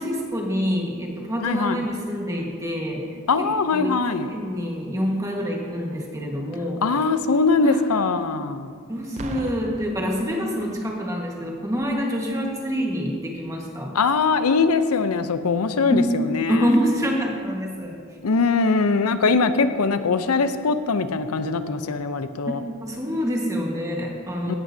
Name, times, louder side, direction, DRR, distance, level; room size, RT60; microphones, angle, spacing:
voice 1, 0.0-3.0 3.4-3.5 3.7-6.8 7.6-7.8 8.9-13.9 15.9-16.1 16.5-18.0 22.5-24.6, equal, 15° right, 0 dB, 1.5 m, -26 dB
voice 2, 1.4-1.9 3.3-4.3 6.8-8.7 13.9-16.7 18.2-22.6 24.5-24.6, left 4 dB, 90° left, 10 dB, 0.6 m, -22 dB
Boom, 9.2-10.9 11.8-12.0, right 2 dB, 30° right, 0.5 m, -38 dB
16.5 x 11.0 x 2.7 m, 2.1 s
head